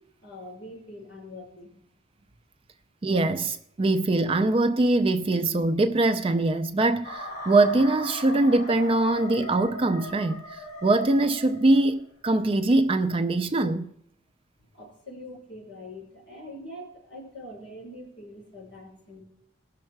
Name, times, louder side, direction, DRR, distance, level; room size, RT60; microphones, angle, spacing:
voice 1, 0.2-1.7 14.7-19.2, left 1 dB, 55° left, 5.0 m, -43 dB
voice 2, 3.0-13.9, right 2 dB, 25° right, 0.4 m, -23 dB
sound 1, 7.0-12.0, equal, 35° left, 1.9 m, -38 dB
18.5 x 6.5 x 4.6 m
head